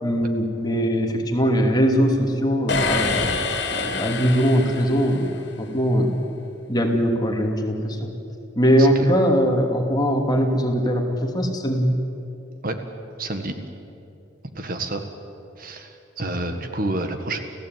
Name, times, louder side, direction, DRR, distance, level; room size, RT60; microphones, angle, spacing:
voice 1, 0.0-3.3 3.7-5.3 5.6-6.1 6.7-8.1 8.6-11.9, equal, 20° left, 2 dB, 2.7 m, -21 dB
sound 1, 2.7-5.5, left 4 dB, 60° left, 2.8 m, -26 dB
voice 2, 8.8-9.1 12.6-12.8 13.2-13.5 14.6-15.0 15.6-17.4, right 2 dB, 50° right, 7 dB, 1.8 m, -29 dB
30.0 x 16.0 x 9.4 m, 2.8 s
head